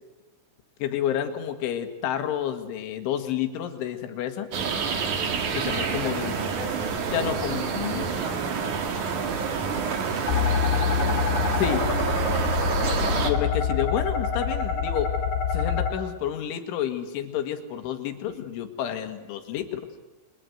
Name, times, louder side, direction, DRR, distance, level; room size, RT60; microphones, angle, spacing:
voice 1, 0.8-4.5 5.6-6.3 7.1-8.2 11.6-11.9 13.2-15.1 15.5-19.8, left 10 dB, 70° left, 7 dB, 3.9 m, -29 dB
sound 1, 4.5-13.3, right 5 dB, 50° right, 2.7 m, -28 dB
voice 2, 5.9-11.3, right 4 dB, 70° right, 4 dB, 5.6 m, -40 dB
sound 2, 10.3-15.9, left 6 dB, 45° left, 4.4 m, -26 dB
29.5 x 23.5 x 7.9 m, 1.2 s
omnidirectional pair, 5.9 m